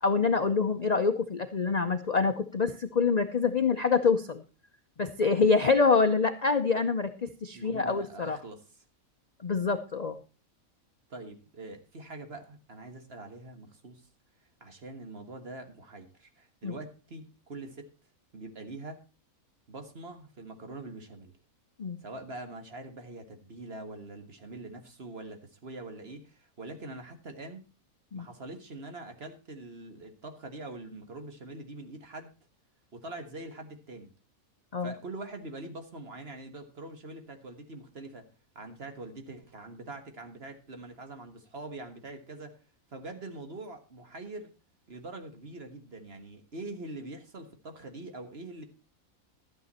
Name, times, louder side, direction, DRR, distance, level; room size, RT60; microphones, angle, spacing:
voice 1, 0.0-4.4 5.0-8.4 9.4-10.2 16.6-16.7 21.8-22.0 28.1-28.3 34.7-34.9, left 4 dB, 45° left, 9 dB, 0.6 m, -26 dB
voice 2, 7.5-8.6 11.1-14.0 14.6-17.9 18.3-19.0 19.7-21.3 22.0-27.6 28.1-32.3 32.9-34.1 34.8-38.3 38.6-42.6 42.9-44.5 44.9-48.6, right 2 dB, 45° right, 6 dB, 1.7 m, -43 dB
12.5 x 9.3 x 4.2 m, 0.34 s
omnidirectional pair, 1.5 m